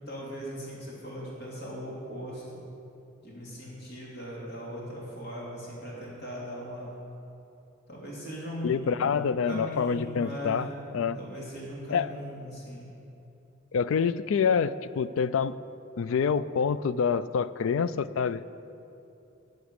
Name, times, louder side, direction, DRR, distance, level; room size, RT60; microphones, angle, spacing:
voice 1, 0.1-2.4 3.2-6.9 7.9-10.7 11.1-12.9, equal, 55° left, -5 dB, 2.7 m, -39 dB
voice 2, 8.6-11.2 11.9-12.1 13.7-15.6 16.0-18.4, left 6 dB, 75° left, 16 dB, 0.4 m, -27 dB
13.0 x 5.3 x 8.1 m, 2.8 s
head